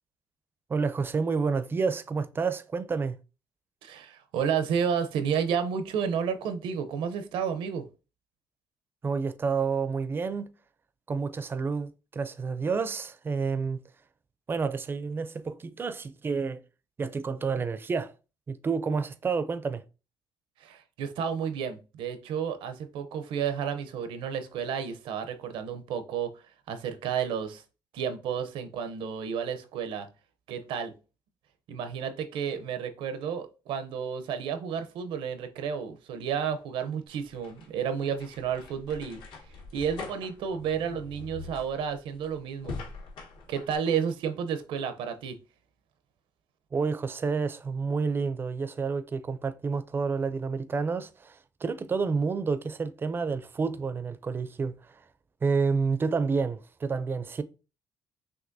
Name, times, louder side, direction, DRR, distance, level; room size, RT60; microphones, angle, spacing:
voice 1, 0.7-3.2 9.0-10.5 11.1-13.8 14.5-16.6 17.0-18.1 18.5-19.8 46.7-55.0 55.4-57.4, right 5 dB, 25° right, 0.4 m, -29 dB
voice 2, 3.8-7.9 20.6-27.6 27.9-30.1 30.5-30.9 31.7-39.2 39.7-42.8 43.5-45.4, right 7 dB, 90° right, 0.7 m, -31 dB
sound 1, 37.1-43.8, left 4 dB, 75° left, 1.2 m, -43 dB
6.0 x 2.8 x 2.6 m
cardioid pair, 125°, 9 cm